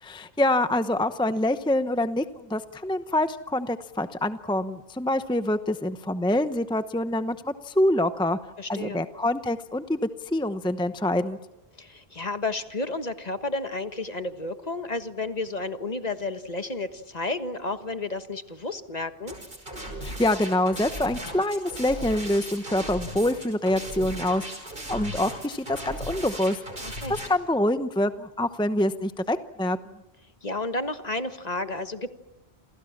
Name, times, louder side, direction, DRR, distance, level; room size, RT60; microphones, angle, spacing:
voice 1, 0.0-8.4 8.7-10.0 10.3-11.4 20.0-24.6 24.9-26.6 27.1-29.8, left 1 dB, 5° left, 10 dB, 0.8 m, -26 dB
voice 2, 8.6-9.0 11.8-19.3 26.8-27.2 30.4-32.1, left 2 dB, 40° left, 9 dB, 1.6 m, -32 dB
sound 1, 19.3-27.3, right 1 dB, 55° right, 5.5 m, -37 dB
29.0 x 28.0 x 7.3 m, 0.97 s
omnidirectional pair, 1.1 m